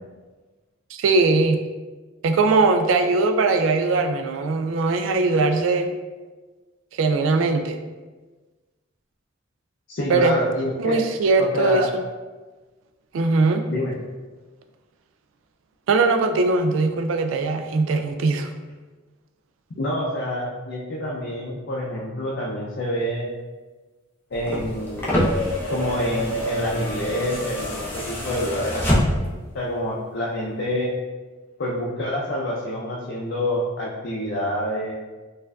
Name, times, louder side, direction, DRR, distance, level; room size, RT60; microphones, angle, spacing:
voice 1, 0.9-1.6 2.2-5.9 7.0-7.8 10.1-10.4 10.8-11.9 13.1-13.6 15.9-18.5, right 3 dB, 75° right, 7 dB, 0.3 m, -20 dB
voice 2, 9.9-11.0 11.4-11.9 13.7-13.9 19.8-23.3 24.3-25.1 25.7-29.0 29.5-30.9 31.6-35.0, left 1 dB, 60° left, -5 dB, 0.5 m, -27 dB
sound 1, 24.3-29.5 30.7-30.8, equal, 10° left, 0.6 m, -25 dB
4.3 x 2.5 x 2.3 m, 1.3 s
head